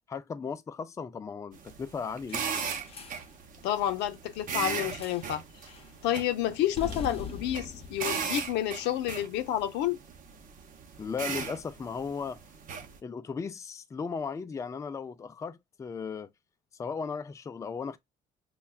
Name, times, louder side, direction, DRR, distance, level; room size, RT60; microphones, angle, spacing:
voice 1, 0.1-2.4 11.0-12.4 13.0-16.3 16.8-18.0, left 5 dB, 20° left, 0.3 m, -36 dB
sound 1, 1.5-13.0, right 6 dB, 55° right, 0.8 m, -38 dB
sound 2, 2.3-3.3 5.0-5.4 5.7-6.0 6.8-9.1, left 5 dB, 35° left, 0.7 m, -42 dB
voice 2, 3.6-5.4 6.0-10.0, left 12 dB, 90° left, 0.6 m, -29 dB
5.4 x 2.2 x 2.2 m
cardioid pair, 110°, 17 cm